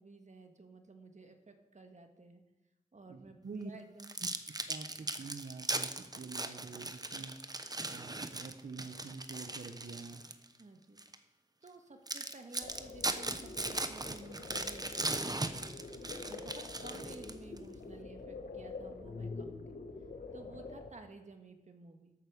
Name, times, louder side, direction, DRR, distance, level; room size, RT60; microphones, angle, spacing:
voice 1, 0.0-2.4 2.9-3.4 3.6-4.2 10.5-11.0 11.6-15.7 16.2-19.8 20.3-22.1, right 3 dB, 55° right, 6 dB, 1.6 m, -53 dB
voice 2, 3.1-3.7 4.7-7.3 7.9-10.2, right 4 dB, 70° right, 4 dB, 1.0 m, -46 dB
sound 1, 4.0-10.5 11.0-11.2 11.7-11.8 12.1-17.6, right 2 dB, 25° right, 0.9 m, -38 dB
sound 2, 12.6-20.9, left 4 dB, 85° left, 1.3 m, -46 dB
13.0 x 8.4 x 6.6 m, 1.0 s
wide cardioid pair, 65°, 15 cm